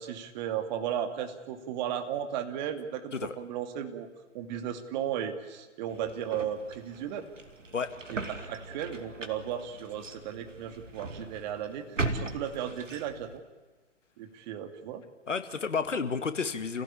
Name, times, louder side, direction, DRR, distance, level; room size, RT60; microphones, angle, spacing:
voice 1, 0.0-4.1 4.3-7.3 8.1-13.4 14.2-15.0, right 9 dB, 35° right, 6 dB, 2.5 m, -35 dB
sound 1, 5.9-13.4, right 3 dB, 85° right, 2.6 m, -39 dB
voice 2, 15.3-16.8, left 5 dB, 75° left, 10 dB, 2.1 m, -31 dB
28.0 x 16.5 x 8.6 m, 1.3 s
figure-of-eight pair, 125°, 37 cm